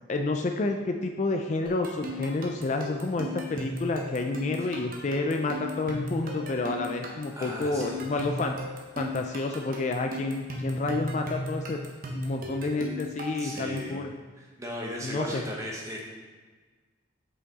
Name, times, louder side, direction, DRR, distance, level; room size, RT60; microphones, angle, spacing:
voice 1, 0.0-8.6 9.0-11.8 12.1-14.1 15.0-15.4, left 2 dB, 35° left, 4 dB, 0.3 m, -29 dB
sound 1, 1.7-14.0, left 1 dB, 45° right, 0.9 m, -36 dB
voice 2, 7.3-8.3 9.4-9.5 13.2-13.9 14.4-16.0, equal, 15° right, -2 dB, 0.9 m, -37 dB
5.6 x 5.4 x 4.0 m, 1.4 s
head